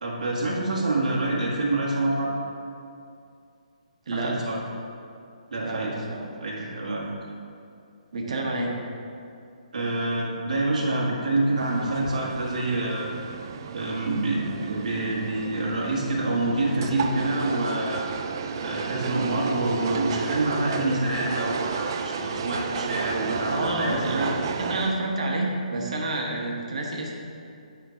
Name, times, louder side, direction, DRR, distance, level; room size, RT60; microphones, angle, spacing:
voice 1, 0.0-2.3 4.1-4.6 5.5-5.9 6.4-7.1 9.7-13.1 13.7-18.1 18.6-24.0, right 2 dB, 75° right, -4 dB, 1.8 m, -26 dB
voice 2, 4.1-4.4 5.6-6.2 8.1-8.8 23.5-27.2, right 2 dB, 55° right, -1 dB, 1.6 m, -28 dB
sound 1, 11.6-24.9, right 6 dB, 30° right, 0.4 m, -33 dB
9.8 x 4.4 x 5.8 m, 2.5 s
hypercardioid pair, 175°, 4 cm